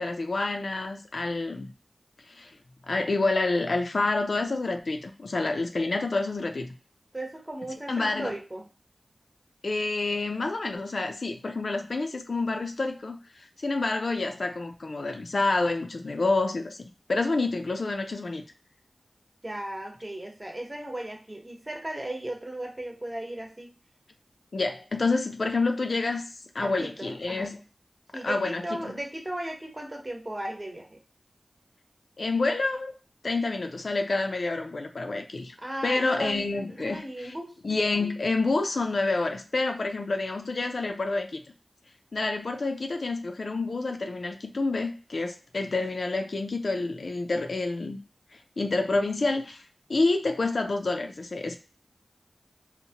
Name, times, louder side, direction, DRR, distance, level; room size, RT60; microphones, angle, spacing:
voice 1, 0.0-1.7 2.3-2.6 2.9-6.7 7.9-8.3 9.6-16.8 17.1-18.4 24.5-26.2 26.5-27.6 28.2-29.0 32.2-32.9 33.2-35.6 35.8-37.3 37.6-41.4 42.1-48.0 48.6-49.6 49.9-51.6, left 3 dB, 75° left, 5 dB, 0.4 m, -28 dB
voice 2, 7.1-8.7 19.4-23.7 26.6-27.5 28.1-31.0 35.6-36.5 36.8-37.5, right 1 dB, 25° right, 1 dB, 0.9 m, -36 dB
2.8 x 2.1 x 2.8 m, 0.35 s
wide cardioid pair, 50°, 0 cm